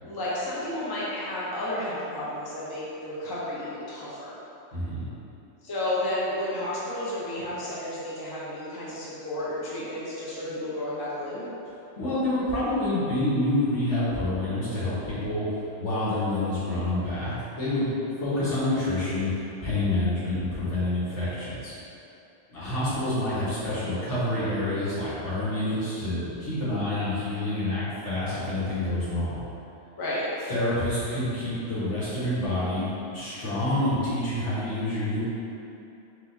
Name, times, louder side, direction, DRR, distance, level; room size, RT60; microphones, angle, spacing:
voice 1, 0.0-4.4 5.6-11.4 30.0-30.3, left 1 dB, 25° left, -8 dB, 0.6 m, -32 dB
voice 2, 4.7-5.1 12.0-17.9 18.2-19.3 19.6-21.7 22.5-29.4 30.5-35.2, left 1 dB, 75° left, -11 dB, 1.6 m, -27 dB
4.2 x 3.5 x 2.8 m, 2.9 s
omnidirectional pair, 1.2 m